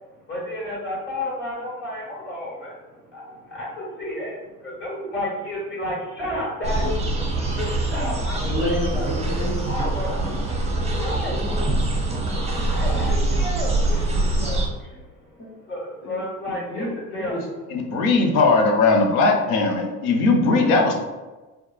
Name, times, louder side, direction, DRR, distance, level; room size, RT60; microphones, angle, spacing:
voice 1, 0.3-2.8 3.1-7.0 7.3-9.1 9.6-10.1 10.9-11.4 12.6-14.0 14.4-14.6 15.3-15.4 15.7-16.9 17.1-17.3 20.7-20.8, left 1 dB, 30° left, -4 dB, 1.3 m, -31 dB
sound 1, 6.6-14.7, right 2 dB, 15° right, 0.6 m, -24 dB
voice 2, 8.4-9.7 10.2-11.7 11.9-13.0 13.9-14.2 14.9-15.0 15.4-15.5 16.0-16.2 16.5-17.4 20.6-20.8, left 1 dB, 60° left, -4 dB, 1.3 m, -33 dB
voice 3, 17.7-21.0, left 3 dB, 80° left, 2 dB, 0.6 m, -19 dB
2.8 x 2.3 x 2.3 m, 1.2 s
hypercardioid pair, 65°, 42 cm